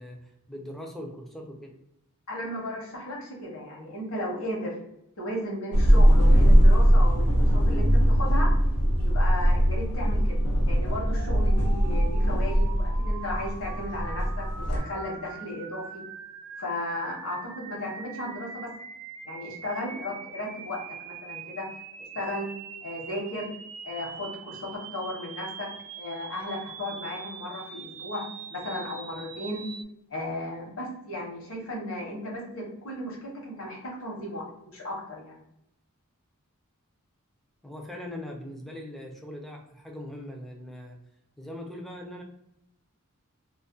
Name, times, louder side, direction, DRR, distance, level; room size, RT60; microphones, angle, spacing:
voice 1, 0.0-1.7 37.6-41.0 41.4-42.2, left 1 dB, ahead, 0 dB, 0.3 m, -40 dB
voice 2, 2.3-4.8 5.2-8.5 9.0-16.0 16.6-18.7 19.2-20.8 21.0-21.6 22.1-22.5 22.8-23.5 23.8-25.7 26.0-28.2 28.5-29.6 30.1-34.4 34.7-35.3, left 1 dB, 65° left, -2 dB, 0.9 m, -35 dB
sound 1, 5.7-14.8, equal, 90° left, 0.6 m, -21 dB
sound 2, 10.8-29.8, right 6 dB, 75° right, 0.3 m, -43 dB
2.3 x 2.1 x 2.5 m, 0.80 s
head